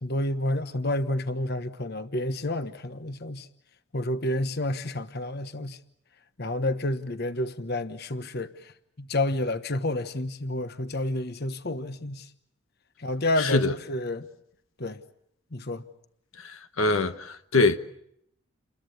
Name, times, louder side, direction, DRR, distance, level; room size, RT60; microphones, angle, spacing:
voice 1, 0.0-3.5 3.9-5.8 6.4-8.7 9.0-12.3 13.0-14.3 14.8-15.0 15.5-15.8, left 1 dB, 50° left, 1.2 m, -29 dB
voice 2, 13.4-13.7 16.4-17.8, left 3 dB, 80° left, 1.3 m, -24 dB
29.5 x 22.0 x 8.5 m
head